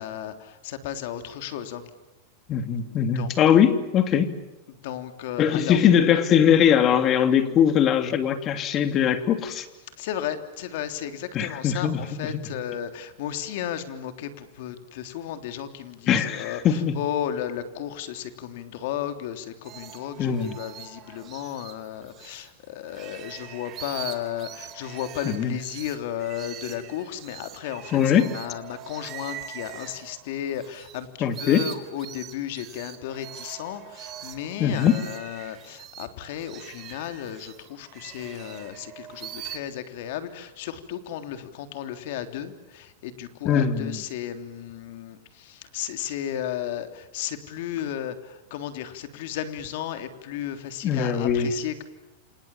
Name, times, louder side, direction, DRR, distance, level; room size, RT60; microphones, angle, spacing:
voice 1, 0.0-1.9 2.8-3.3 4.7-5.8 10.0-51.8, left 10 dB, 60° left, 8 dB, 3.4 m, -34 dB
voice 2, 2.5-4.3 5.4-9.7 11.3-12.0 12.3-12.5 16.1-16.9 20.2-20.5 25.2-25.5 27.9-28.3 31.2-31.6 34.6-35.0 43.4-44.0 50.8-51.5, left 8 dB, 30° left, 9 dB, 2.9 m, -21 dB
sound 1, 19.6-22.5 22.8-31.0 31.2-39.6, right 11 dB, 30° right, 3.2 m, -42 dB
29.5 x 27.0 x 7.3 m, 1.0 s
supercardioid pair, 140°, 0 cm